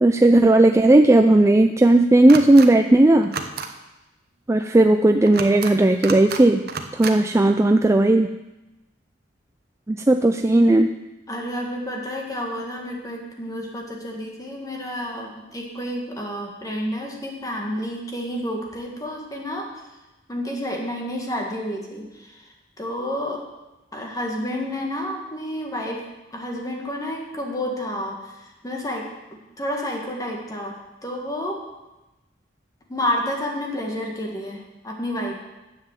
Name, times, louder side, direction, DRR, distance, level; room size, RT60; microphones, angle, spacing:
voice 1, 0.0-3.3 4.5-6.6 7.0-8.3 9.9-10.9, right 2 dB, 15° right, 6 dB, 0.4 m, -15 dB
sound 1, 2.3-2.7 3.2-3.7 5.3-5.7 6.0-6.4 6.7-7.1, right 5 dB, 55° right, 0.9 m, -31 dB
voice 2, 11.3-19.7 20.3-23.4 23.9-26.0 26.3-29.1 29.6-30.7 31.0-31.6 32.9-35.4, left 1 dB, 20° left, 0 dB, 1.9 m, -30 dB
9.8 x 7.6 x 7.5 m, 1.0 s
head